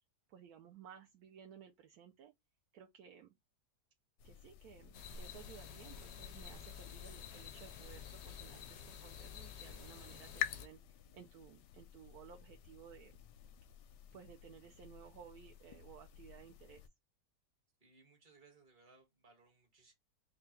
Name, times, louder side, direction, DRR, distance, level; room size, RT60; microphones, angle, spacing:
voice 1, 0.3-2.3 2.7-3.4 4.2-10.8 11.1-13.1 14.1-16.9, right 8 dB, 75° right, 1.0 m, -57 dB
sound 1, 4.2-16.9, left 11 dB, 85° left, 1.2 m, -50 dB
sound 2, 4.9-10.7, left 7 dB, 65° left, 0.7 m, -50 dB
voice 2, 17.8-19.9, right 4 dB, 30° right, 1.4 m, -65 dB
3.8 x 2.3 x 4.3 m
omnidirectional pair, 1.7 m